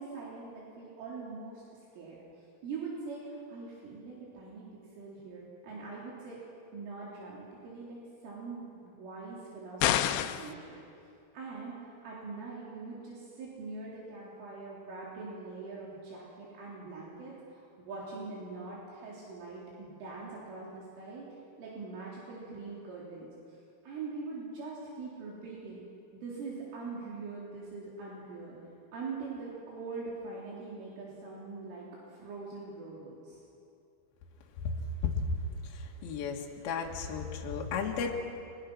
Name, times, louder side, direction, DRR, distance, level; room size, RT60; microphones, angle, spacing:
voice 1, 0.0-1.6 1.9-2.2 2.6-4.7 5.0-6.4 6.7-10.8 11.3-21.3 21.6-23.6 23.8-25.8 26.1-28.6 28.9-33.4, right 4 dB, 75° right, -5 dB, 5.9 m, -43 dB
sound 1, 9.8-10.5, left 12 dB, 85° left, 2.4 m, -27 dB
voice 2, 36.0-38.1, left 6 dB, 60° left, 0 dB, 3.3 m, -34 dB
29.5 x 23.5 x 6.1 m, 2.5 s
omnidirectional pair, 5.7 m